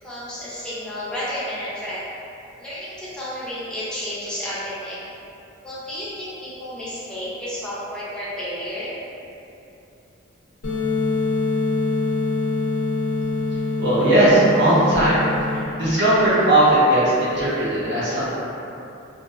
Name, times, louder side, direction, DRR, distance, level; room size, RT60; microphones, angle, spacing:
voice 1, 0.0-2.0 2.6-5.0 5.6-8.9, equal, 5° left, -11 dB, 0.5 m, -31 dB
sound 1, 10.6-15.6, left 3 dB, 85° left, 0.4 m, -24 dB
voice 2, 13.8-15.2 15.5-18.4, right 1 dB, 55° right, -11 dB, 0.7 m, -18 dB
2.5 x 2.1 x 2.4 m, 2.8 s
head